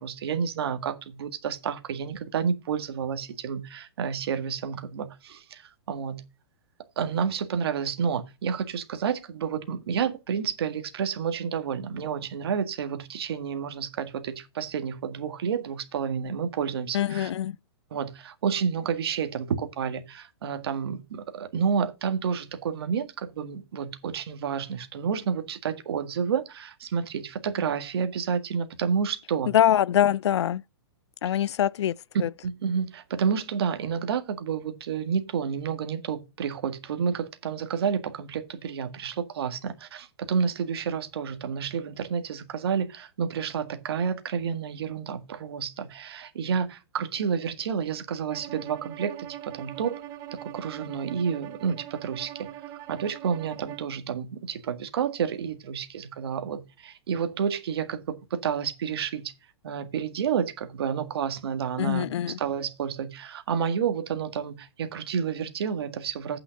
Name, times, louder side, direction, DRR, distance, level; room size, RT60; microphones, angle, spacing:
voice 1, 0.0-6.2 7.0-17.3 17.9-29.5 32.4-50.0 50.3-52.5 52.9-59.3 59.6-66.4, right 7 dB, 65° right, 1.8 m, -30 dB
voice 2, 16.9-17.6 29.5-30.6 31.2-32.3 61.8-62.4, left 11 dB, 85° left, 0.4 m, -24 dB
Bowed string instrument, 48.3-53.9, right 12 dB, 25° right, 0.8 m, -42 dB
8.8 x 5.8 x 5.2 m
hypercardioid pair, 160°, 14 cm